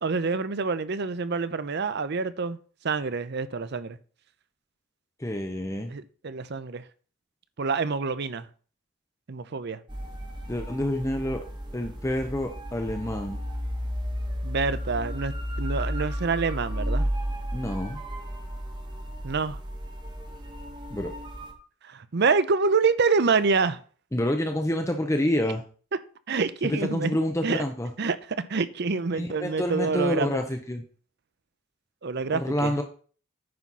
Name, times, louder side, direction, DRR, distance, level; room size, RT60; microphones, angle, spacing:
voice 1, 0.0-2.6 2.8-4.0 5.9-6.8 7.6-8.5 9.3-9.8 14.4-17.1 19.2-19.6 21.8-23.8 26.3-27.1 27.4-27.6 28.0-30.4 32.0-32.7, right 4 dB, 50° right, 0.6 m, -27 dB
voice 2, 5.2-5.9 10.5-11.4 11.7-13.4 17.5-18.0 20.9-21.1 24.1-25.6 26.6-27.9 29.1-30.8 32.3-32.8, left 1 dB, 15° left, 0.7 m, -28 dB
sound 1, 9.9-21.5, equal, 20° right, 1.3 m, -33 dB
9.5 x 4.2 x 6.1 m
head